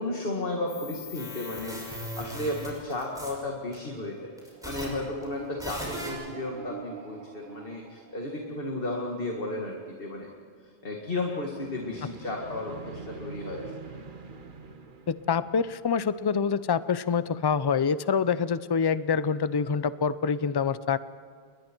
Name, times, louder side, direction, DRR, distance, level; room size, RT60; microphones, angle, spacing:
voice 1, 0.0-4.2 4.6-10.3 10.8-13.7, left 2 dB, 55° left, 0 dB, 2.2 m, -33 dB
sound 1, 0.7-3.3 3.7-3.8 4.4-4.8 5.2-5.3 5.6-6.1, equal, 5° right, 6.2 m, -38 dB
sound 2, 4.5-8.8 11.4-16.4, right 5 dB, 50° right, 1.3 m, -45 dB
voice 2, 15.1-21.0, left 6 dB, 35° left, 15 dB, 0.4 m, -26 dB
29.5 x 21.5 x 4.6 m, 2.2 s
omnidirectional pair, 1.1 m